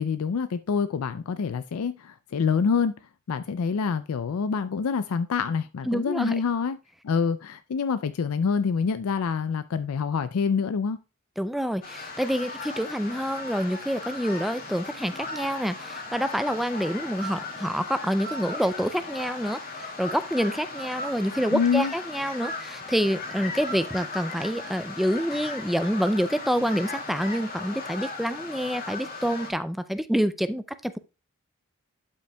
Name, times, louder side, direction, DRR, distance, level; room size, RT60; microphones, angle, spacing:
voice 1, 0.0-2.9 3.3-6.8 7.0-11.0 21.5-21.9, left 6 dB, 75° left, 0.4 m, -26 dB
voice 2, 5.9-6.4 11.4-31.0, equal, ahead, 0.3 m, -27 dB
sound 1, 11.8-29.5, left 3 dB, 40° left, 2.0 m, -37 dB
11.5 x 5.6 x 2.2 m
head